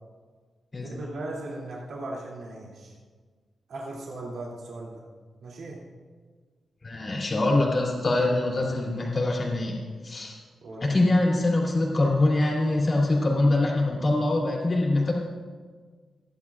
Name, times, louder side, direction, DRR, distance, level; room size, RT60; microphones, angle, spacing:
voice 1, 0.8-2.9 3.7-5.1 5.4-5.8 10.6-10.9, right 2 dB, 85° right, -4 dB, 2.7 m, -38 dB
voice 2, 6.8-9.8 10.0-10.4 10.8-15.1, left 2 dB, 30° left, -2 dB, 2.9 m, -24 dB
29.0 x 11.0 x 2.5 m, 1.5 s
wide cardioid pair, 170°, 0 cm